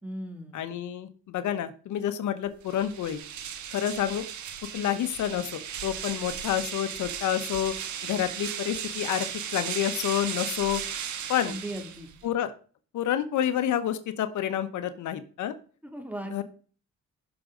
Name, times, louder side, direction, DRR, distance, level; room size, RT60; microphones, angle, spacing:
voice 1, 0.0-0.6 11.4-12.1 15.8-16.4, right 1 dB, 5° right, 5 dB, 2.5 m, -37 dB
voice 2, 0.5-3.2 3.7-4.2 4.7-7.7 8.0-9.3 9.5-10.8 11.3-11.5 12.2-12.5 12.9-15.5 16.3-16.4, left 10 dB, 75° left, 11 dB, 1.1 m, -29 dB
sound 1, 2.6-12.3, right 8 dB, 70° right, 1.6 m, -36 dB
16.0 x 6.1 x 3.9 m, 0.40 s
cardioid pair, 90°, 30 cm